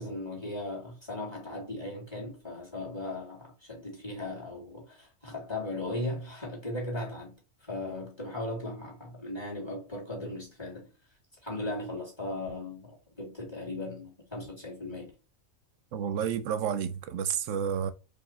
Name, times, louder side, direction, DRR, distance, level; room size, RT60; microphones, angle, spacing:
voice 1, 0.0-7.4 7.7-10.9 11.4-15.1, left 2 dB, 20° left, 2.0 m, -37 dB
voice 2, 15.9-17.9, right 8 dB, 70° right, 0.9 m, -30 dB
4.7 x 2.5 x 4.2 m
omnidirectional pair, 1.4 m